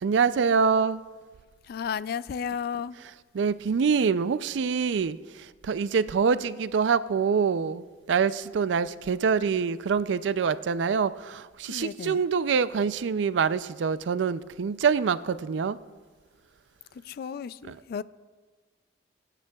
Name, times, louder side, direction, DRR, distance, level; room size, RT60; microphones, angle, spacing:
voice 1, 0.0-1.0 3.3-15.8 17.7-17.8, right 6 dB, 90° right, 0.4 m, -25 dB
voice 2, 1.7-2.9 11.7-12.2 17.0-18.0, left 7 dB, 60° left, 0.3 m, -33 dB
24.5 x 9.1 x 2.3 m
head